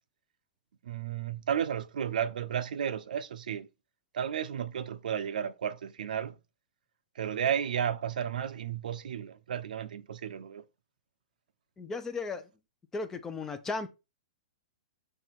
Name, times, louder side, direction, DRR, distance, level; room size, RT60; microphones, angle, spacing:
voice 1, 0.8-3.7 4.1-6.3 7.2-10.6, right 8 dB, 80° right, 0.7 m, -33 dB
voice 2, 11.8-12.5 12.9-13.9, left 3 dB, 10° left, 0.6 m, -35 dB
7.7 x 3.5 x 4.4 m
hypercardioid pair, 160°, 4 cm